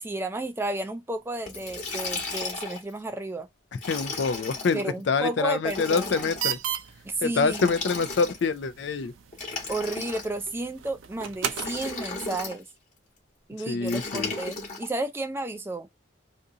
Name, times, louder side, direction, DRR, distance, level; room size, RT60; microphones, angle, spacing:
voice 1, 0.0-3.5 4.7-6.3 7.0-7.7 9.7-12.6 13.5-15.9, right 2 dB, 10° right, 0.3 m, -32 dB
Liquid, 1.5-2.9 3.7-4.8 5.6-6.5 7.5-8.6 9.3-10.5 11.5-12.6 13.9-14.9, left 3 dB, 40° left, 1.1 m, -35 dB
voice 2, 3.9-6.6 7.2-9.1 13.7-14.3, left 4 dB, 65° left, 0.4 m, -26 dB
sound 1, 6.1-11.9, right 9 dB, 85° right, 0.5 m, -36 dB
2.7 x 2.6 x 3.6 m
head